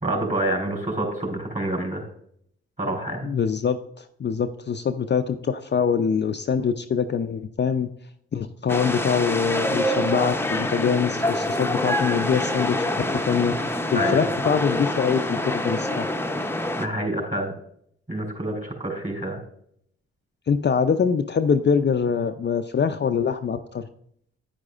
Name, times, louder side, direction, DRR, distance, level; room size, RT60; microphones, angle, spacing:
voice 1, 0.0-2.1 2.8-3.3 13.9-14.2 16.8-17.5 18.1-19.4, right 1 dB, 25° right, 2 dB, 3.9 m, -27 dB
voice 2, 3.2-7.9 8.3-16.1 20.5-23.9, left 6 dB, 35° left, 8 dB, 0.5 m, -24 dB
sound 1, 8.7-16.9, left 1 dB, 10° left, 0.8 m, -26 dB
9.5 x 9.0 x 2.5 m, 0.68 s
hypercardioid pair, 40°, 29 cm